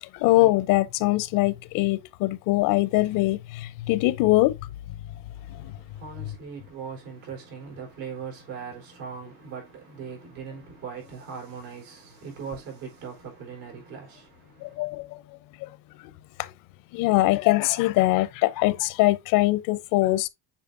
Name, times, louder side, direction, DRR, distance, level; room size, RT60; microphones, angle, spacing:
voice 1, 0.0-4.6 5.5-5.8 14.6-15.2 15.6-15.7 16.4-16.5 16.9-20.3, left 18 dB, 70° left, 0.7 m, -23 dB
voice 2, 5.3-14.8, right 6 dB, 85° right, 4.2 m, -40 dB
7.5 x 4.9 x 2.6 m
cardioid pair, 135°, 34 cm